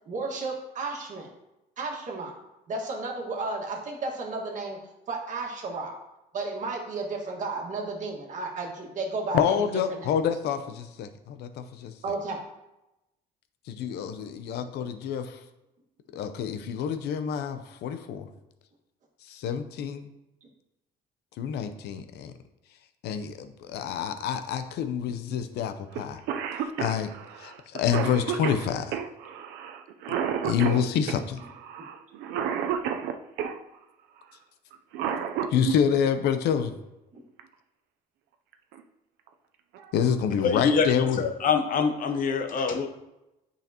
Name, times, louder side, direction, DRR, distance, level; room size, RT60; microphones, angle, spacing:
voice 1, 0.1-1.3 1.8-2.3 2.7-4.8 5.1-6.0 6.3-10.1 12.0-12.4 29.3-29.4 37.1-37.2, right 3 dB, 50° right, 0 dB, 1.7 m, -33 dB
voice 2, 9.3-11.9 13.7-15.4 16.1-18.3 19.3-20.1 21.4-22.3 23.0-26.2 26.8-27.1 27.4-29.0 30.4-31.4 35.5-36.7 39.9-41.2, left 8 dB, 75° left, 9 dB, 0.7 m, -27 dB
Cough, 25.9-26.0 26.3-33.6 34.7-35.8 37.4-37.5 38.5-38.8 39.3-39.4 39.7-40.2, right 8 dB, 85° right, 0.6 m, -31 dB
voice 3, 40.4-42.9, left 5 dB, 55° left, 6 dB, 0.9 m, -25 dB
9.1 x 5.7 x 2.9 m, 0.93 s
cardioid pair, 110°, 17 cm